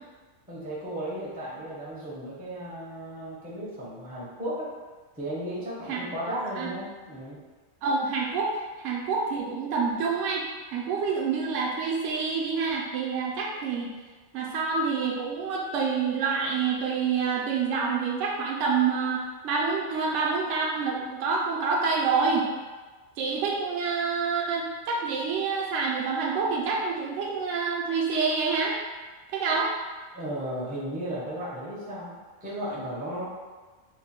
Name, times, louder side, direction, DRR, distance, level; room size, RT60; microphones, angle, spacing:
voice 1, 0.5-4.7 5.1-7.4 30.1-32.1 32.4-33.3, right 1 dB, 10° right, -7 dB, 0.6 m, -35 dB
voice 2, 6.3-6.7 7.8-8.5 8.8-10.4 10.7-13.9 14.3-22.5 23.2-28.7 29.3-29.7, right 5 dB, 70° right, -3 dB, 0.9 m, -27 dB
3.1 x 2.2 x 4.2 m, 1.3 s
omnidirectional pair, 1.4 m